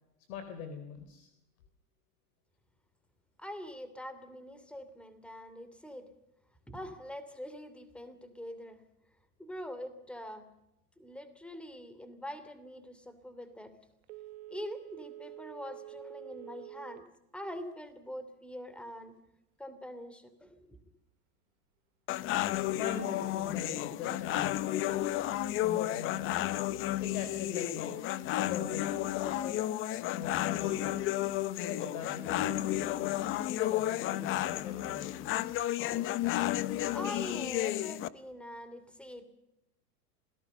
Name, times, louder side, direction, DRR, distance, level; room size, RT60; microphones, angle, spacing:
voice 1, 0.3-1.3 22.7-24.9 25.6-26.5 27.0-28.0 28.4-29.7 30.1-31.0 31.6-35.4, left 6 dB, 60° left, 8 dB, 3.7 m, -41 dB
voice 2, 3.4-6.1 6.7-8.8 9.4-10.4 11.0-13.7 14.5-17.0 17.3-19.1 19.6-20.8 35.9-36.0 36.6-39.2, left 1 dB, ahead, 11 dB, 2.8 m, -44 dB
Telephone, 14.0-17.2 17.6-17.7, right 16 dB, 45° right, 1.0 m, -48 dB
sound 1, 22.1-38.1, left 14 dB, 25° left, 0.7 m, -32 dB
27.5 x 18.0 x 6.8 m, 0.90 s
supercardioid pair, 140°, 46 cm